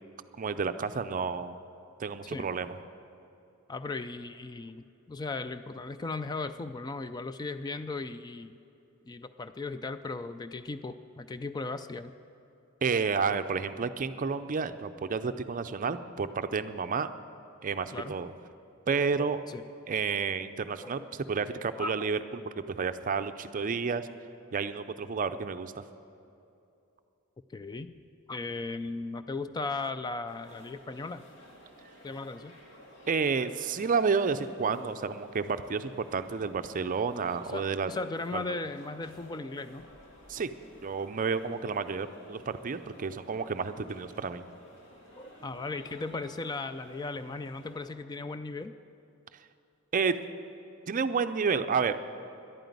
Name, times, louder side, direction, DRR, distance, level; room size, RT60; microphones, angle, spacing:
voice 1, 0.4-1.6 2.0-2.8 12.8-17.1 17.6-18.3 18.9-19.4 19.9-22.4 22.7-24.1 24.5-25.8 33.1-37.9 38.3-38.6 40.3-40.5 40.8-44.4 49.9-50.2 50.9-52.0, right 5 dB, 40° right, 10 dB, 0.5 m, -30 dB
voice 2, 3.7-8.6 9.1-12.1 17.9-18.2 19.2-19.7 20.1-20.2 20.8-21.0 21.8-21.9 27.5-27.9 28.3-31.2 32.0-32.6 37.5-39.9 45.2-48.8, left 3 dB, 20° left, 11 dB, 0.3 m, -37 dB
sound 1, 30.3-47.9, equal, 60° left, 2.3 m, -54 dB
11.0 x 9.2 x 9.4 m, 2.8 s
head